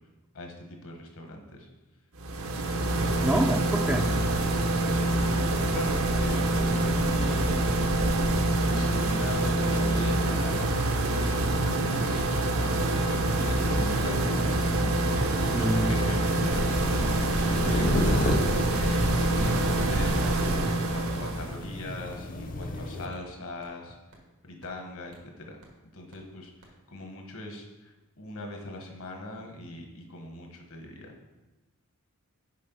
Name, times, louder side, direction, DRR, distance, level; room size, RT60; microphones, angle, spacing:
voice 1, 0.3-1.7 3.3-3.5 4.8-5.2 5.6-7.9 8.6-14.9 15.5-18.3 18.6-24.0 24.4-25.6 25.9-31.1, left 1 dB, 65° left, 2 dB, 1.3 m, -40 dB
AC-Industrial-rattle-Dark, 2.2-21.6, right 2 dB, 65° right, 0.8 m, -26 dB
voice 2, 3.2-4.1 15.5-16.1, right 1 dB, 5° right, 1 dB, 0.4 m, -27 dB
sound 1, 13.4-23.1, left 1 dB, 40° left, 0.7 m, -34 dB
sound 2, 16.4-20.6 21.1-21.2 21.6-21.7 22.1-22.2 22.6-22.7 23.1-23.2 23.6-23.7 24.1-24.2 24.6-24.7 25.1-25.2 25.6-25.7 26.1-26.2 26.6-26.7, equal, 90° right, 1.8 m, -33 dB
6.5 x 5.1 x 5.5 m, 1.1 s
head